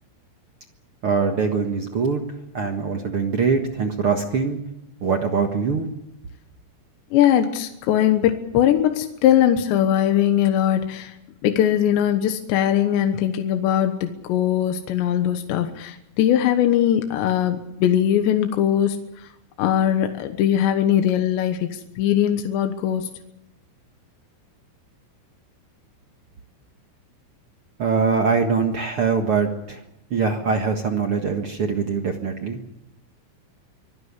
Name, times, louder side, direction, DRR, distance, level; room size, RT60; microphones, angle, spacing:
voice 1, 1.0-2.3 2.5-4.6 5.0-5.9 27.8-29.8 30.1-32.6, right 5 dB, 75° right, 4 dB, 1.2 m, -23 dB
voice 2, 7.1-11.1 11.4-19.3 19.6-23.1, left 10 dB, 75° left, 6 dB, 3.4 m, -20 dB
25.0 x 17.5 x 8.3 m, 0.82 s
omnidirectional pair, 5.2 m